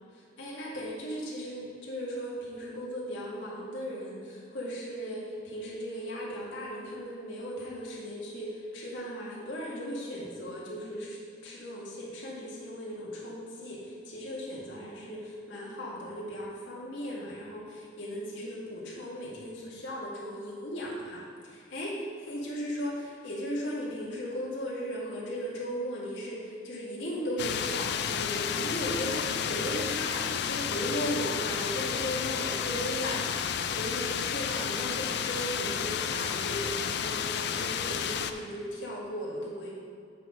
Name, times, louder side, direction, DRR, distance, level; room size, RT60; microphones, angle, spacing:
voice 1, 0.1-11.2 11.4-39.7, equal, 80° left, -6 dB, 1.7 m, -37 dB
sound 1, 27.4-38.3, left 8 dB, 60° left, 0.4 m, -31 dB
8.3 x 4.0 x 6.0 m, 2.4 s
head